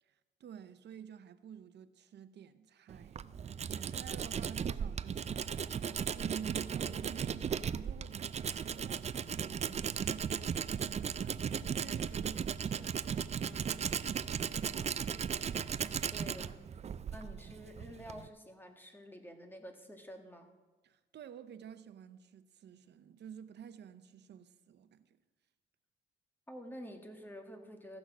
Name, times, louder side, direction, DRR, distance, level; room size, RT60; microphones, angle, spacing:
voice 1, 0.0-5.8 6.2-14.9 20.8-25.2, right 8 dB, 60° right, 0.7 m, -51 dB
Tools, 2.9-18.3, right 7 dB, 35° right, 0.4 m, -36 dB
voice 2, 16.1-16.6 17.1-20.5 26.5-28.0, equal, 10° left, 1.7 m, -49 dB
15.0 x 6.3 x 6.2 m
cardioid pair, 90°, 20 cm